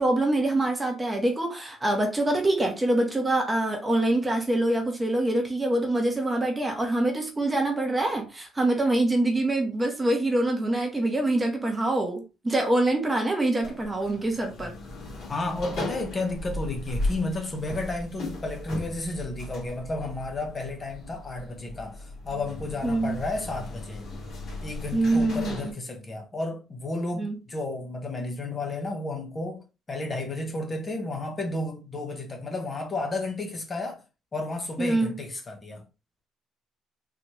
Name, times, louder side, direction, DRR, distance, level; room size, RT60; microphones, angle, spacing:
voice 1, 0.0-14.7 22.8-23.2 24.9-25.7 27.2-27.4 34.8-35.1, right 1 dB, 15° right, 0.9 m, -25 dB
sound 1, 13.6-25.7, left 2 dB, 55° left, 2.2 m, -37 dB
voice 2, 15.3-24.0 24.6-29.6 29.9-34.0 34.3-35.8, left 2 dB, 25° left, 0.9 m, -32 dB
4.0 x 3.0 x 3.0 m
cardioid pair, 150°, 0 cm